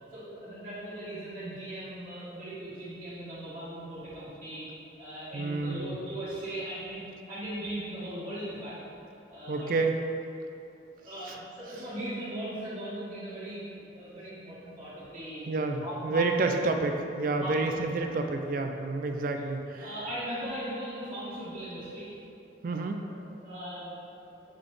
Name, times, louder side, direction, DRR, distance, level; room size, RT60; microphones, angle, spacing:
voice 1, 0.1-4.7 5.0-8.8 9.3-9.7 10.9-15.5 15.8-16.3 17.3-18.3 19.3-19.4 19.8-22.1 22.7-23.9, right 1 dB, 25° right, -14 dB, 1.4 m, -39 dB
voice 2, 5.3-6.0 9.5-9.9 11.3-11.4 15.5-19.9 22.6-23.0, right 3 dB, 50° right, 4 dB, 0.3 m, -29 dB
7.2 x 4.0 x 3.3 m, 2.7 s
head